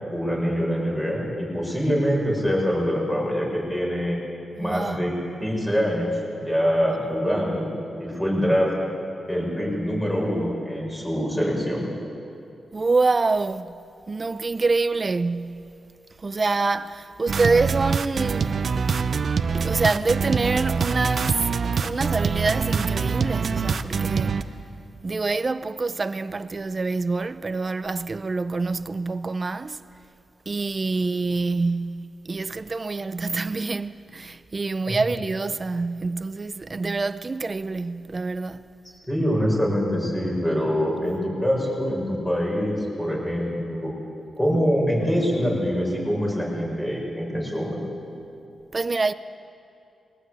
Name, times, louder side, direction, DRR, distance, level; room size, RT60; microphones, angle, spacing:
voice 1, 0.1-4.2 4.6-5.1 5.4-7.7 8.0-8.7 9.3-11.9 34.8-35.0 39.1-43.9 44.4-47.9, equal, 10° left, 7.1 m, -24 dB
voice 2, 4.6-5.0 12.7-13.8 14.1-15.7 16.2-18.6 19.5-24.6 25.0-29.8 30.5-38.7 48.7-49.1, right 3 dB, 35° right, 0.6 m, -26 dB
sound 1, 17.3-24.4, right 5 dB, 60° right, 0.8 m, -24 dB
21.5 x 18.0 x 8.4 m
cardioid pair, 90°, 0 cm